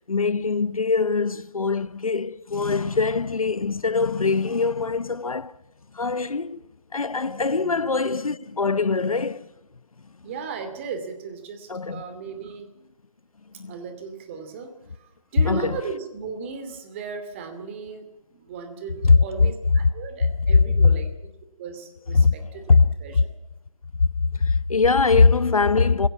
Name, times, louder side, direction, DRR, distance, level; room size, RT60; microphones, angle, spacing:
voice 1, 0.1-5.5 5.9-6.6 6.9-9.5 11.7-12.0 13.6-13.7 15.4-15.8 19.0-19.1 20.7-20.9 22.1-22.3 22.7-22.9 24.3-26.1, left 4 dB, 75° left, 1.0 m, -21 dB
voice 2, 10.2-12.7 13.7-21.1 21.6-23.2, right 5 dB, 20° right, 2.5 m, -36 dB
23.0 x 17.0 x 8.3 m
figure-of-eight pair, 160°, 18 cm